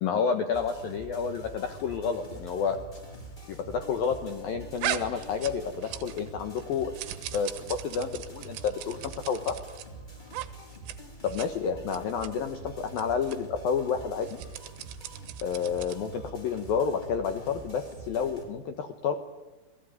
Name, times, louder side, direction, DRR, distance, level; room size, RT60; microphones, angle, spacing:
voice 1, 0.0-2.8 3.5-6.9 7.3-9.6 11.2-14.4 15.4-19.2, left 6 dB, 75° left, 7 dB, 2.2 m, -30 dB
sound 1, 0.5-18.4, right 3 dB, 10° left, 4.3 m, -45 dB
sound 2, 4.8-6.3 6.6-9.9 10.3-10.5 10.7-11.0 11.2-11.5 11.9-12.3 12.9-13.0 13.3-13.4 14.2-16.1, right 12 dB, 75° right, 3.9 m, -38 dB
28.0 x 20.0 x 9.5 m, 1.2 s
omnidirectional pair, 5.9 m